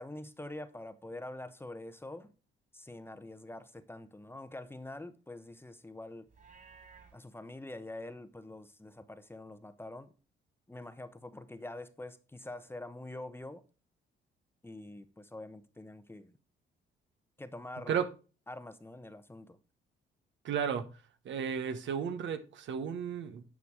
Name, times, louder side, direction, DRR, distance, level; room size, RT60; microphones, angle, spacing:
voice 1, 0.0-2.3 2.7-6.3 7.1-10.1 10.7-13.6 14.6-16.3 17.4-18.0 18.5-19.6, left 2 dB, 10° left, 0.9 m, -45 dB
Livestock farm animals working animals, 6.3-7.2, right 5 dB, 45° right, 3.3 m, -56 dB
voice 2, 20.4-20.9 21.2-23.4, right 7 dB, 70° right, 1.2 m, -33 dB
9.8 x 5.8 x 4.8 m
cardioid pair, 90°, 20 cm